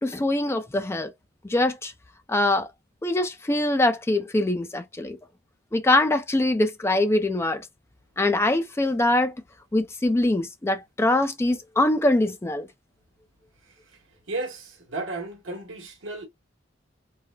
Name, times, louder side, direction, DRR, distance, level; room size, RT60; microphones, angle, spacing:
voice 1, 0.0-1.1 1.5-1.9 2.3-2.7 3.0-5.2 5.7-7.7 8.2-9.3 9.7-12.7, left 1 dB, 15° left, 0.4 m, -23 dB
voice 2, 13.6-14.0 14.3-16.3, right 2 dB, 75° right, 1.1 m, -34 dB
3.2 x 2.0 x 2.2 m
head